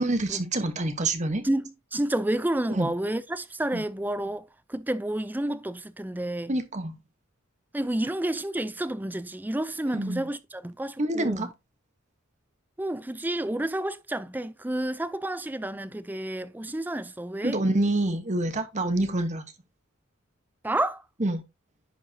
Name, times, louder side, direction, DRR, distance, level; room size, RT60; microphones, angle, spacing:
voice 1, 0.0-1.4 2.7-2.9 3.7-3.8 6.5-6.9 9.9-10.3 11.0-11.5 17.4-19.4 21.2-21.4, right 2 dB, 35° right, 1.1 m, -27 dB
voice 2, 1.4-6.6 7.7-11.5 12.8-17.6 20.6-21.0, right 1 dB, 10° right, 0.4 m, -30 dB
10.0 x 4.9 x 2.8 m
head